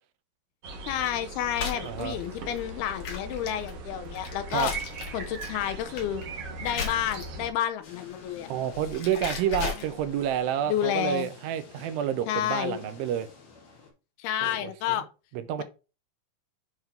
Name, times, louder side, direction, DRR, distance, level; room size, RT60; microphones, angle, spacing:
sound 1, 0.6-7.5, right 3 dB, 60° right, 1.6 m, -40 dB
voice 1, 0.9-4.7 5.1-6.2 6.6-8.5 10.7-11.3 12.3-12.8 14.2-15.1, left 10 dB, 90° left, 2.7 m, -30 dB
sound 2, 1.5-7.5 8.6-10.4, left 6 dB, 55° left, 2.5 m, -37 dB
voice 2, 1.8-2.2 4.5-4.7 8.5-13.3 14.4-14.7 15.5-15.6, right 10 dB, 80° right, 2.2 m, -29 dB
sound 3, 7.8-13.9, left 5 dB, 75° left, 4.2 m, -49 dB
10.0 x 3.7 x 4.4 m
omnidirectional pair, 4.5 m